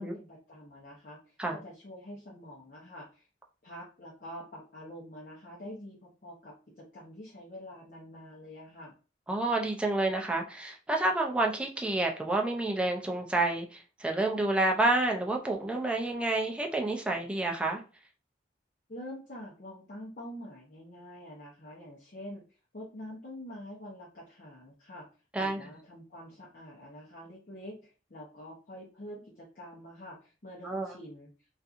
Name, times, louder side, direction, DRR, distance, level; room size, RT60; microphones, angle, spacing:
voice 1, 0.0-3.3 3.6-8.9 18.9-22.4 22.7-25.1 25.4-31.3, equal, 50° left, -5 dB, 0.7 m, -46 dB
voice 2, 9.3-17.8 25.3-25.7 30.6-30.9, right 2 dB, 5° right, 1 dB, 0.4 m, -29 dB
2.6 x 2.4 x 2.4 m, 0.34 s
head